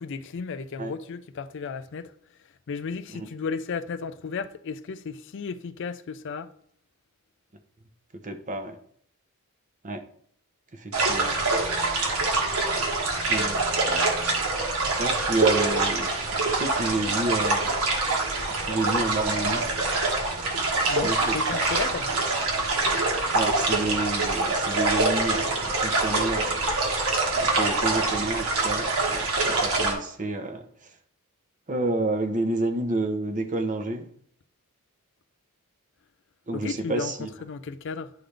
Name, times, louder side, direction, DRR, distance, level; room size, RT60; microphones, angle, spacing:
voice 1, 0.0-2.1 2.7-6.5 20.9-22.1 36.5-38.1, left 5 dB, 55° left, 0.4 m, -34 dB
voice 2, 8.1-8.8 9.8-10.0 10.7-11.4 13.3-13.6 15.0-16.2 16.5-17.7 18.6-19.7 21.0-21.5 23.3-26.6 27.4-31.0 31.7-34.1 36.5-37.3, right 2 dB, 35° right, 0.8 m, -30 dB
sound 1, 10.9-29.9, right 3 dB, 65° right, 1.5 m, -25 dB
11.0 x 3.8 x 3.3 m
head